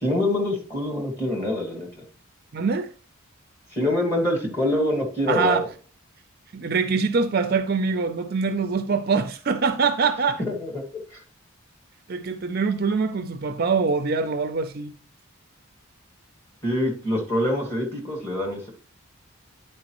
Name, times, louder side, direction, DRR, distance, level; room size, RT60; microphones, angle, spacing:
voice 1, 0.0-2.0 3.7-5.6 10.5-10.8 11.1-11.2 16.6-18.6, left 1 dB, 10° left, 1.8 m, -25 dB
voice 2, 2.5-2.9 5.3-5.6 6.5-10.4 12.1-14.9, right 4 dB, 45° right, 0.4 m, -24 dB
10.5 x 4.5 x 3.0 m
head